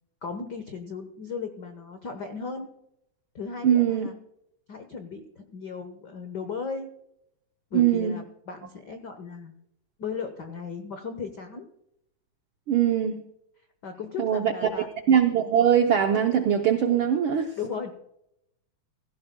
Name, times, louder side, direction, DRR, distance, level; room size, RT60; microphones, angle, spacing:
voice 1, 0.2-2.7 3.3-4.1 4.7-6.9 7.7-9.5 10.0-11.7 13.8-14.9 17.6-17.9, left 5 dB, 85° left, 8 dB, 0.9 m, -36 dB
voice 2, 3.6-4.1 7.7-8.2 12.7-13.2 14.2-14.5 15.1-17.5, right 9 dB, 85° right, 5 dB, 1.1 m, -21 dB
16.0 x 15.5 x 2.2 m, 0.79 s
omnidirectional pair, 3.5 m